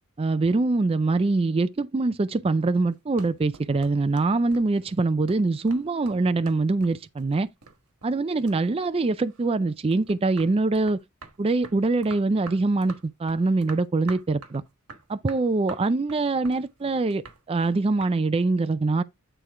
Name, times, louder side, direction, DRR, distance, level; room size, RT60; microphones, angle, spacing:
voice 1, 0.2-7.5 8.0-11.0 11.4-14.6 15.1-19.0, right 3 dB, 25° right, 0.4 m, -24 dB
sound 1, 2.9-8.2 8.5-9.5 9.9-18.2, right 4 dB, 80° right, 1.5 m, -46 dB
9.1 x 4.4 x 3.6 m
head